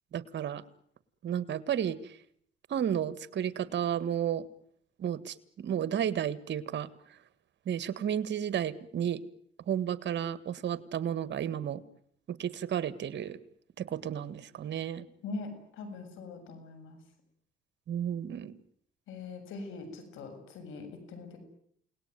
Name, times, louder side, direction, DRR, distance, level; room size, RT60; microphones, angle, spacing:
voice 1, 0.1-0.6 1.2-2.1 2.7-4.4 5.0-6.9 7.7-9.2 9.7-11.8 12.3-13.4 13.8-15.0 17.9-18.5, right 9 dB, 65° right, 15 dB, 1.8 m, -32 dB
voice 2, 15.2-17.0 19.1-21.4, left 3 dB, 85° left, 7 dB, 7.5 m, -42 dB
29.5 x 19.0 x 9.4 m, 0.68 s
cardioid pair, 90°, 20 cm